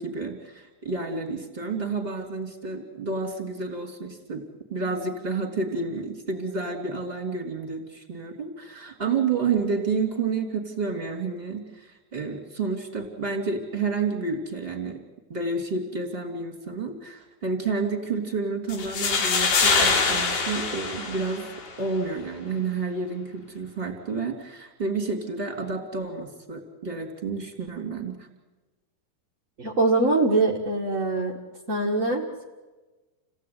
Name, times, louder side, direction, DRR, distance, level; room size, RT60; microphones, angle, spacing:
voice 1, 0.0-4.4 4.7-15.0 15.3-21.5 21.8-28.3, right 4 dB, 15° right, 4 dB, 3.1 m, -30 dB
sound 1, 18.7-21.7, left 4 dB, 90° left, 4.9 m, -24 dB
voice 2, 29.6-31.4 31.7-32.4, right 2 dB, 30° right, -2 dB, 1.5 m, -23 dB
29.5 x 17.0 x 9.7 m, 1.2 s
omnidirectional pair, 4.2 m